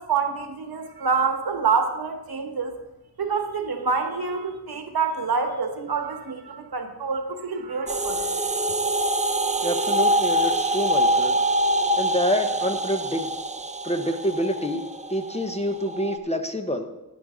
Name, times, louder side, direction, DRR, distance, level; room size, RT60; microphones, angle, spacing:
voice 1, 0.0-2.8 3.2-8.3, right 5 dB, 65° right, 5 dB, 1.3 m, -27 dB
sound 1, 7.9-16.2, right 1 dB, 20° right, 0.4 m, -24 dB
voice 2, 9.6-11.4 12.0-13.3 13.8-14.8 15.1-16.9, equal, 15° left, 6 dB, 0.7 m, -27 dB
11.0 x 9.6 x 3.8 m, 0.97 s
wide cardioid pair, 140°, 40 cm